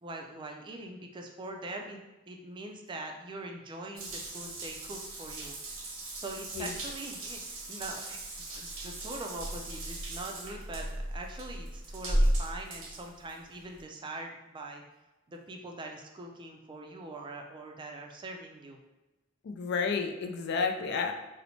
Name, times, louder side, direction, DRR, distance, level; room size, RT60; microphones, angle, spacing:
voice 1, 0.0-2.0 2.3-5.6 6.1-14.8 15.3-18.8, right 2 dB, 25° right, 2 dB, 0.4 m, -43 dB
Water tap faucet / Bathtub (filling or washing) / Drip, 4.0-13.8, right 1 dB, 85° right, 0.8 m, -35 dB
voice 2, 19.4-21.1, left 5 dB, 55° left, 5 dB, 0.4 m, -31 dB
2.9 x 2.1 x 4.0 m, 1.1 s
head